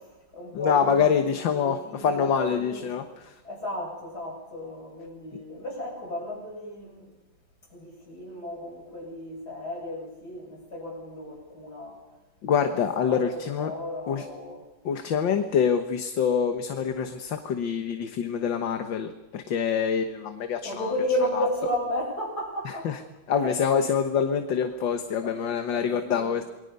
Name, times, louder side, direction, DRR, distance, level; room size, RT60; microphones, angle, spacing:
voice 1, 0.0-3.1 3.4-7.1 7.7-12.0 12.6-14.6 20.6-22.9 23.3-23.8 25.2-26.5, left 1 dB, 45° left, 0 dB, 8.2 m, -34 dB
voice 2, 0.5-3.4 12.4-13.7 14.1-14.3 14.9-20.9 21.4-21.5 22.7-23.0 23.3-26.4, left 7 dB, 60° left, 7 dB, 1.9 m, -26 dB
28.5 x 22.5 x 5.5 m, 1.1 s
omnidirectional pair, 2.4 m